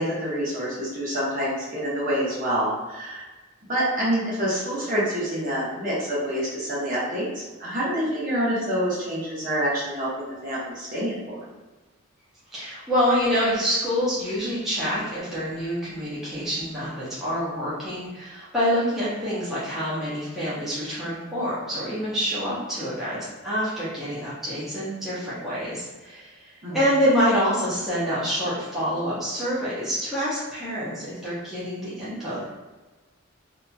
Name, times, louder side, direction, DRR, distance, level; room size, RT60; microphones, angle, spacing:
voice 1, 0.0-3.2 3.7-11.4 26.6-26.8, equal, 40° right, -8 dB, 0.9 m, -27 dB
voice 2, 12.5-32.4, equal, ahead, -11 dB, 0.8 m, -26 dB
2.8 x 2.7 x 2.3 m, 1.2 s
head